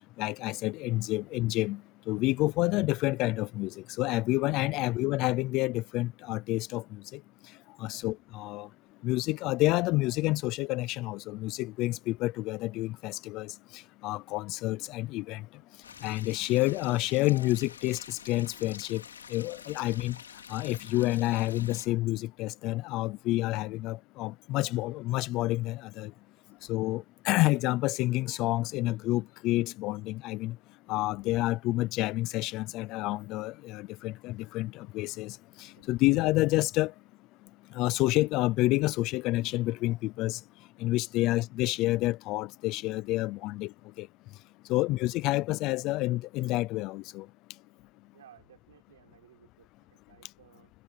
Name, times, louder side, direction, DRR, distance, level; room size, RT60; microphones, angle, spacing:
voice 1, 0.2-1.8 2.1-6.8 7.1-7.2 7.8-8.7 9.0-15.4 16.0-19.0 19.3-20.2 20.5-26.1 26.7-30.5 30.9-36.9 37.7-40.4 40.8-43.7 44.0-44.1 44.7-47.3, left 18 dB, 15° left, 0.3 m, -29 dB
sound 1, 15.8-21.9, left 7 dB, 85° left, 2.9 m, -48 dB
voice 2, 35.8-36.1 41.2-41.4 44.7-45.0 48.1-50.7, right 11 dB, 45° right, 6.2 m, -60 dB
hypercardioid pair, 180°, 0 cm